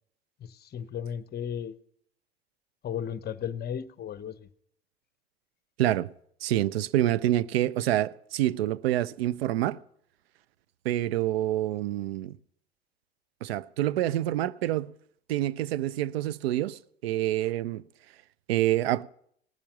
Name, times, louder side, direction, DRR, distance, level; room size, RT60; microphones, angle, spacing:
voice 1, 0.4-1.7 2.8-4.5, left 8 dB, 30° left, 0.8 m, -35 dB
voice 2, 5.8-6.1 6.4-9.8 10.8-12.3 13.4-14.9 15.3-17.8 18.5-19.0, right 14 dB, 80° right, 0.5 m, -27 dB
18.5 x 7.1 x 6.1 m
hypercardioid pair, 80°, 30 cm